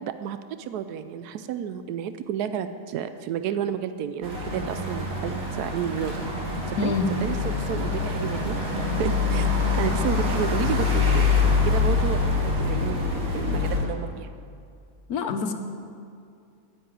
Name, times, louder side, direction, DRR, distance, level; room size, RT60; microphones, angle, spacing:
voice 1, 0.0-6.3 6.7-8.5 8.9-9.5 9.7-11.3 11.6-14.3, right 9 dB, 90° right, 11 dB, 1.1 m, -31 dB
sound 1, 4.2-13.8, left 4 dB, 65° right, 2.6 m, -25 dB
voice 2, 15.1-15.5, left 5 dB, 75° left, 7 dB, 1.4 m, -26 dB
10.0 x 9.6 x 8.9 m, 2.4 s
omnidirectional pair, 1.6 m